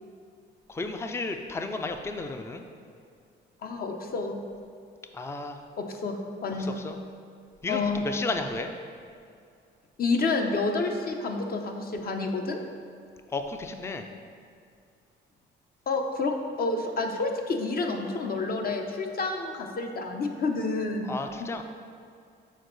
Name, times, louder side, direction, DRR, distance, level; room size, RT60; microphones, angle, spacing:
voice 1, 0.7-2.6 5.1-5.6 6.6-7.0 7.6-8.8 13.3-14.1 21.1-21.6, left 3 dB, 15° left, 6 dB, 0.4 m, -33 dB
voice 2, 3.6-4.4 5.8-6.8 7.7-8.0 10.0-12.6 15.9-21.1 21.4-21.5, left 3 dB, 50° left, 3 dB, 0.7 m, -29 dB
6.4 x 4.4 x 4.0 m, 2.3 s
cardioid pair, 90°, 20 cm